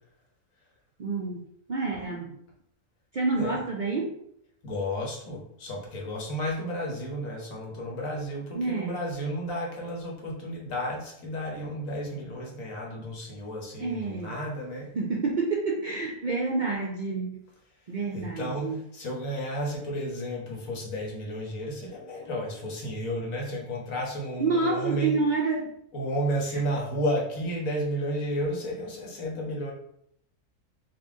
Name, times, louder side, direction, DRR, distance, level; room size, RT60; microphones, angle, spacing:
voice 1, 1.0-2.4 3.1-4.1 8.5-9.0 13.8-14.4 14.9-17.4 17.9-18.8 24.4-25.7 26.5-26.6, right 3 dB, 60° right, -1 dB, 0.5 m, -28 dB
voice 2, 4.6-14.9 18.1-25.1 25.9-29.7, equal, 85° left, -1 dB, 1.5 m, -32 dB
4.2 x 2.5 x 3.6 m, 0.70 s
omnidirectional pair, 1.4 m